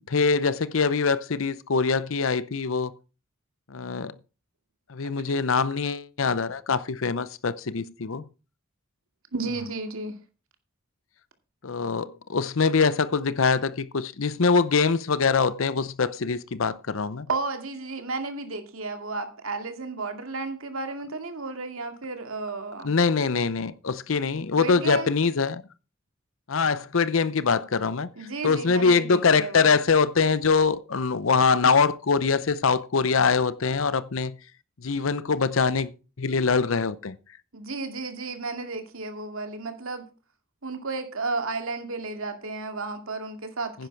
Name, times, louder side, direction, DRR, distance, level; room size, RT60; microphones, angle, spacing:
voice 1, 0.0-2.9 3.7-4.1 4.9-8.2 11.6-17.3 22.8-25.6 26.5-28.1 28.4-34.3 34.8-35.9 36.2-37.2 43.8-43.9, left 5 dB, 65° left, 0.7 m, -23 dB
voice 2, 9.3-10.2 17.3-22.9 24.6-25.2 28.2-29.7 37.5-40.1 40.6-43.9, right 3 dB, 70° right, 2.3 m, -33 dB
10.5 x 10.5 x 4.6 m
head